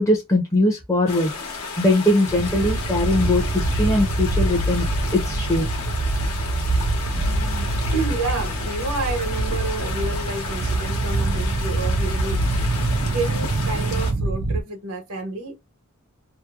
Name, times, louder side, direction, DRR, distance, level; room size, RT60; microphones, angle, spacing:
voice 1, 0.0-1.3 1.8-4.9 5.1-5.6, left 1 dB, 15° left, 0.5 m, -20 dB
sound 1, 1.1-14.1, left 4 dB, 85° left, 1.0 m, -33 dB
sound 2, 2.3-14.6, right 2 dB, 40° right, 0.3 m, -24 dB
voice 2, 7.3-12.7 13.1-15.6, right 3 dB, 90° right, 1.0 m, -30 dB
2.8 x 2.0 x 2.3 m
head